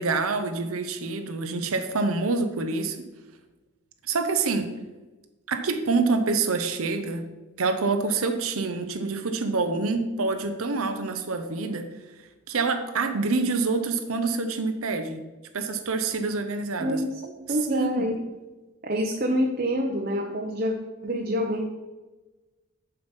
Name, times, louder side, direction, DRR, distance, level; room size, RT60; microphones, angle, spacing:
voice 1, 0.0-3.0 4.1-4.7 5.5-7.3 7.6-11.9 12.5-15.2 15.5-18.1, right 4 dB, 85° right, 7 dB, 0.7 m, -27 dB
voice 2, 16.8-17.1 17.5-18.2 18.8-20.7 21.0-21.6, equal, 40° right, 0 dB, 0.8 m, -26 dB
7.1 x 5.8 x 5.3 m, 1.1 s
head